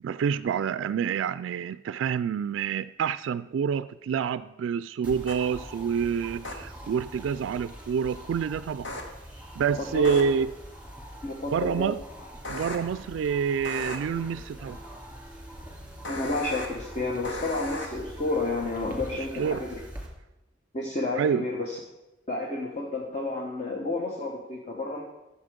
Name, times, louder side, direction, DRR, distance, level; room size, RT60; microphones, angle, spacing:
voice 1, 0.0-8.9 9.6-10.5 11.5-12.0 12.5-14.8 19.1-19.6 21.2-21.4, right 7 dB, 90° right, 15 dB, 0.3 m, -27 dB
sound 1, 5.0-20.1, equal, 10° right, 2.5 m, -44 dB
sound 2, 5.3-5.4 6.4-6.5 8.8-9.0 10.0-10.2 12.4-12.8 13.6-14.0 16.0-16.7 17.2-17.9, left 1 dB, 75° left, 1.7 m, -35 dB
voice 2, 9.8-10.2 11.2-11.9 16.1-19.8 20.7-21.8 22.3-25.0, left 2 dB, 40° left, -1 dB, 1.3 m, -31 dB
13.5 x 7.4 x 5.1 m, 0.98 s
head